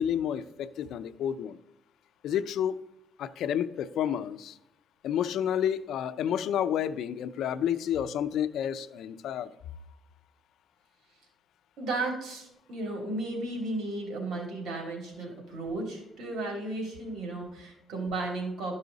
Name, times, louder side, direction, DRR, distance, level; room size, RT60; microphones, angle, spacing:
voice 1, 0.0-1.6 2.2-2.8 3.2-4.6 5.0-9.5, left 9 dB, 80° left, 13 dB, 0.5 m, -30 dB
voice 2, 11.8-18.7, right 2 dB, 75° right, 1 dB, 3.0 m, -34 dB
12.5 x 5.6 x 4.0 m, 0.83 s
cardioid pair, 90°, 0 cm